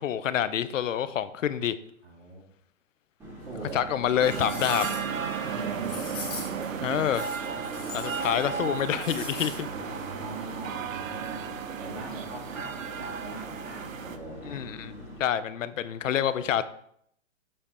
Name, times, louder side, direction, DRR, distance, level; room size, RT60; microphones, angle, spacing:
voice 1, 0.0-1.8 3.7-4.9 6.8-7.3 7.9-9.7 14.4-14.9 15.2-16.6, left 9 dB, 75° left, 14 dB, 0.6 m, -27 dB
voice 2, 2.0-2.4 3.4-3.8 5.4-7.0 7.4-8.2 9.6-14.7, right 3 dB, 60° right, -4 dB, 1.9 m, -42 dB
sound 1, 3.2-15.2, equal, 5° right, 1.3 m, -44 dB
sound 2, 3.6-3.7 4.2-5.2 5.8-6.6 7.1-8.5 8.7-9.6 9.9-10.0, left 4 dB, 15° left, 0.7 m, -41 dB
sound 3, 4.2-14.2, right 7 dB, 90° right, 0.8 m, -34 dB
7.6 x 3.4 x 4.2 m, 0.69 s
hypercardioid pair, 160°, 39 cm